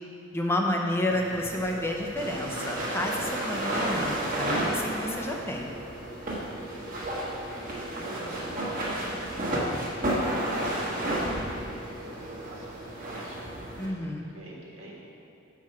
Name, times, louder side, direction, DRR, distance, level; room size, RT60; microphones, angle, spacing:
voice 1, 0.3-5.7 13.8-14.2, left 1 dB, 10° left, 0 dB, 0.5 m, -30 dB
sound 1, 1.1-13.9, right 1 dB, 45° right, 1.4 m, -32 dB
voice 2, 6.6-9.8 10.5-13.4 14.3-14.9, right 1 dB, 75° right, -4 dB, 1.6 m, -46 dB
6.9 x 4.8 x 5.8 m, 2.5 s
head